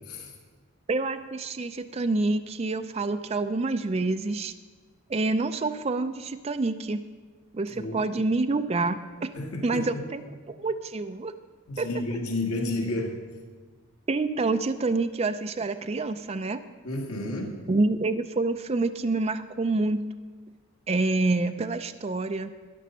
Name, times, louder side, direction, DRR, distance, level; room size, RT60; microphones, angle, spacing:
voice 1, 0.9-4.5 5.1-7.0 7.5-9.3 9.6-11.3 11.8-11.9 14.1-16.6 17.7-20.0 20.9-22.5, right 3 dB, 30° right, 9 dB, 0.4 m, -27 dB
voice 2, 7.7-8.0 9.3-10.1 11.7-13.2 16.8-17.6, left 2 dB, 90° left, 1 dB, 1.7 m, -31 dB
12.5 x 10.0 x 5.5 m, 1.4 s
head